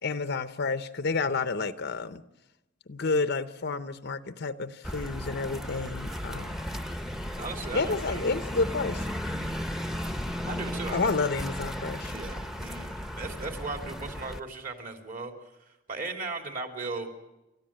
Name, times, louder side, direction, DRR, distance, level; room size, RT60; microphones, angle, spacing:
voice 1, 0.0-2.2 2.9-6.6 7.7-9.1 10.9-12.1, left 4 dB, 55° left, 11 dB, 0.8 m, -30 dB
sound 1, 4.8-14.4, equal, ahead, 1.0 m, -35 dB
voice 2, 7.4-8.2 10.4-11.1 12.0-15.3 15.6-17.1, right 3 dB, 45° right, 4 dB, 3.0 m, -37 dB
29.0 x 13.5 x 8.8 m, 0.99 s
head